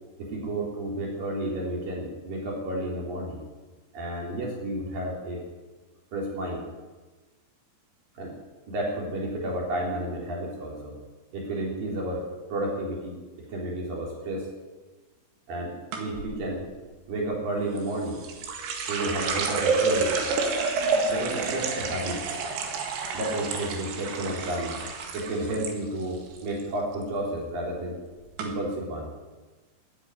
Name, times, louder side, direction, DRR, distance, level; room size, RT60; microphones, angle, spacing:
voice 1, 0.2-3.4 3.9-5.4 6.1-6.6 8.2-8.3 8.7-10.9 11.3-12.2 12.5-13.2 13.5-14.5 15.5-16.6 17.1-18.2 18.9-20.3 21.1-22.2 23.1-24.8 25.1-28.0 28.4-29.1, right 1 dB, 45° right, -2 dB, 5.0 m, -31 dB
sound 1, 15.9-16.3 17.8-25.7 26.0-26.6 26.9-27.3 28.0-28.1 28.4-28.5, right 4 dB, 65° right, 3.6 m, -29 dB
13.5 x 9.2 x 9.9 m, 1.3 s
omnidirectional pair, 5.9 m